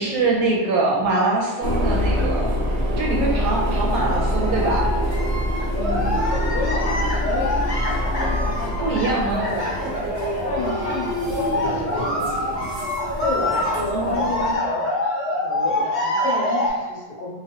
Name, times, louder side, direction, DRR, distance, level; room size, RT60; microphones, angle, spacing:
voice 1, 0.0-2.5 3.0-4.9 8.8-9.5 13.9-14.6, right 3 dB, 70° right, -3 dB, 1.0 m, -23 dB
sound 1, 1.5-1.6 2.4-2.5 3.0-16.7, left 1 dB, 50° left, 0.5 m, -26 dB
sound 2, 1.6-14.6, equal, 90° right, 1.3 m, -25 dB
voice 2, 5.7-7.6 7.9-9.7 10.4-12.7 13.2-14.9 15.3-17.4, left 2 dB, 75° left, -2 dB, 1.1 m, -31 dB
3.0 x 2.3 x 2.8 m, 1.3 s
omnidirectional pair, 1.8 m